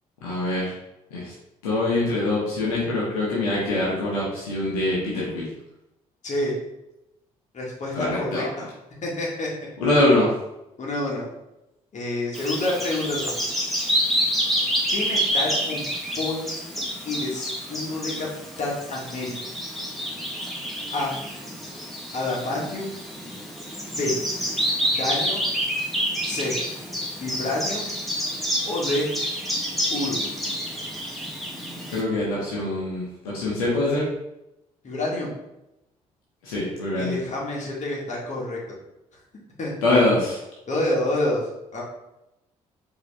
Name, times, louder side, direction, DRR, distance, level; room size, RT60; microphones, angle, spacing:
voice 1, 0.2-0.7 1.1-1.3 1.6-5.5 7.9-8.4 9.8-10.3 31.9-34.1 36.4-37.2 39.8-40.4, left 2 dB, 75° left, -6 dB, 1.0 m, -23 dB
voice 2, 6.2-6.5 7.5-8.7 9.0-9.5 10.8-11.3 11.9-13.4 14.9-15.9 16.2-16.6 17.0-18.3 18.6-19.3 20.9-21.1 22.1-23.0 23.9-24.1 24.8-25.4 26.2-26.6 27.2-27.9 28.6-29.1 29.9-30.2 34.8-35.3 36.9-38.6 39.6-39.7 40.7-41.4 41.7-41.8, left 2 dB, 40° left, -3 dB, 1.5 m, -28 dB
Bird vocalization bird call bird song, 12.3-32.0, equal, ahead, 1.3 m, -28 dB
4.8 x 3.0 x 3.3 m, 0.90 s
figure-of-eight pair, 45°, 18 cm